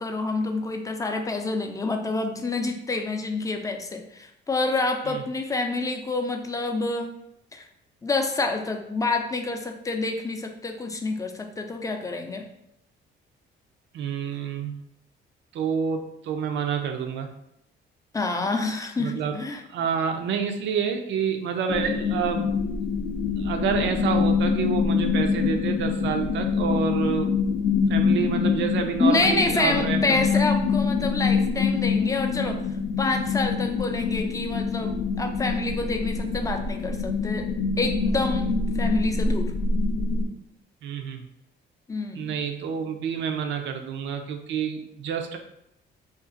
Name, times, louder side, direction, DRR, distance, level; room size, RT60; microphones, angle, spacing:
voice 1, 0.0-7.1 7.5-7.7 8.0-12.5 18.1-19.6 29.0-32.6 33.0-37.5 37.8-39.5 41.9-42.4, left 3 dB, 15° left, 4 dB, 0.4 m, -27 dB
voice 2, 13.9-14.7 15.5-17.3 19.0-19.4 19.7-22.5 23.4-27.3 27.9-30.2 40.8-41.3 42.2-45.4, right 6 dB, 70° right, 5 dB, 0.5 m, -28 dB
sound 1, 21.7-40.3, left 5 dB, 80° left, 0.4 m, -25 dB
2.5 x 2.4 x 3.8 m, 0.79 s
cardioid pair, 90°, 20 cm